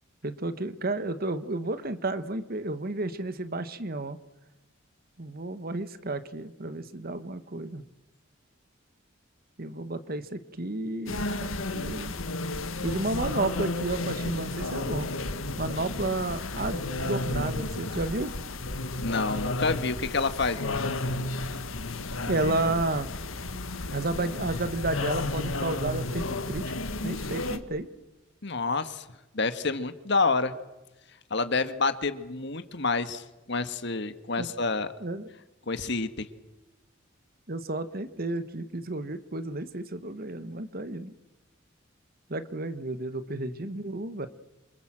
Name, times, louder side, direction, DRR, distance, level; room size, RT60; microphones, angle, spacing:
voice 1, 0.2-4.2 5.2-7.8 9.6-12.1 12.8-15.1 15.6-18.3 22.3-23.1 23.9-26.6 27.0-27.9 34.4-34.5 35.0-35.3 37.5-41.1 42.3-44.3, right 2 dB, 45° right, 11 dB, 1.4 m, -32 dB
sound 1, 11.1-27.6, left 2 dB, 85° left, 1.9 m, -32 dB
voice 2, 19.0-20.9 28.4-29.0 29.3-30.5 31.3-33.2 33.5-34.9 35.7-36.3, left 3 dB, 60° left, 10 dB, 1.7 m, -28 dB
27.5 x 25.0 x 7.6 m, 1.0 s
head